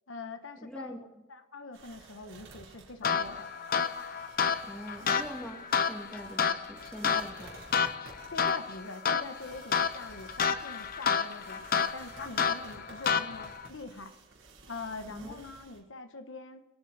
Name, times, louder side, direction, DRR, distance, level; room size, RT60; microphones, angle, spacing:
voice 1, 0.1-1.0 1.3-3.5 8.3-14.1 14.7-16.6, left 3 dB, 85° left, 8 dB, 1.2 m, -44 dB
voice 2, 0.6-1.1 4.6-7.6 15.1-15.4, equal, 5° left, 2 dB, 2.3 m, -43 dB
sound 1, 1.7-15.8, right 3 dB, 75° right, 4.2 m, -54 dB
sound 2, 3.0-13.7, left 6 dB, 50° left, 0.7 m, -30 dB
22.5 x 8.8 x 4.2 m, 1.1 s
head